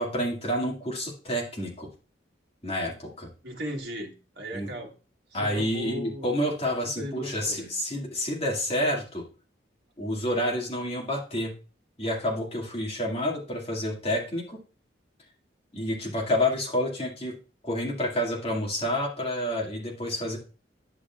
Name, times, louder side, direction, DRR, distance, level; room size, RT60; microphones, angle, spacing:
voice 1, 0.0-1.9 2.6-3.3 4.5-4.7 5.3-9.2 10.0-11.5 12.0-14.6 15.7-17.3 17.6-20.4, left 1 dB, 30° left, -2 dB, 2.0 m, -29 dB
voice 2, 3.4-4.9 5.4-6.3 7.0-7.7, equal, 60° right, 1 dB, 1.6 m, -37 dB
10.0 x 6.4 x 2.4 m, 0.35 s
head